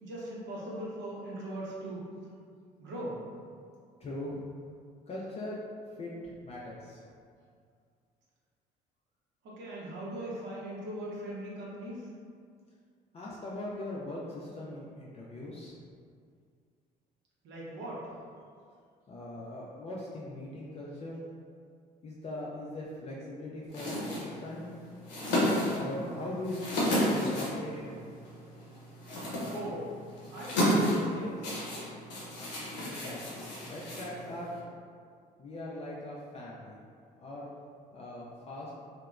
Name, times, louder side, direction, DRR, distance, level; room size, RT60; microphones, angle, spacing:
voice 1, 0.0-2.1 2.8-3.2 9.4-12.1 17.4-18.1 25.7-26.1 29.5-29.9 30.3-31.4, right 1 dB, 60° right, -6 dB, 0.7 m, -40 dB
voice 2, 4.0-4.4 5.1-5.6 6.0-7.1 7.3-7.4 13.1-15.7 19.1-21.2 22.0-24.7 25.7-28.0 32.8-34.5 35.4-36.8 37.2-37.5 37.9-38.7, left 1 dB, 30° left, -6 dB, 0.4 m, -40 dB
sound 1, 23.7-34.6, left 1 dB, 90° left, 0.5 m, -32 dB
2.8 x 2.1 x 2.3 m, 2.2 s
hypercardioid pair, 55°, 21 cm